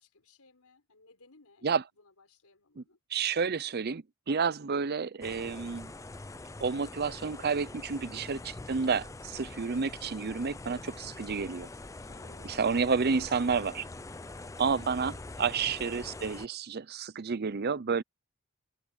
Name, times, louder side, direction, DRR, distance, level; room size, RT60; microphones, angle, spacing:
voice 1, 0.0-1.7 1.9-3.0 12.0-13.1 14.3-15.3 15.6-15.8 16.8-17.1, left 3 dB, 85° left, 4.5 m, -61 dB
voice 2, 3.1-5.9 6.6-11.7 12.4-13.9 14.6-15.1 15.4-18.0, right 5 dB, 45° right, 0.6 m, -30 dB
sound 1, 5.2-16.5, left 2 dB, 15° left, 0.5 m, -44 dB
head